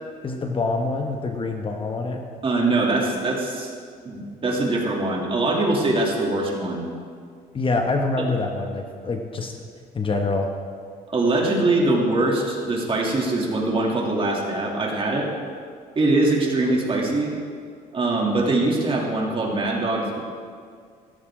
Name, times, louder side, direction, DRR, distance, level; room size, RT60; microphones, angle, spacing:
voice 1, 0.2-2.2 7.5-9.5 9.9-10.5, left 3 dB, 30° left, 3 dB, 1.2 m, -25 dB
voice 2, 2.4-3.7 4.0-6.9 11.1-15.3 15.9-17.3 17.9-20.2, right 2 dB, 30° right, -2 dB, 2.9 m, -22 dB
16.5 x 14.0 x 3.8 m, 2.1 s
cardioid pair, 110°, 17 cm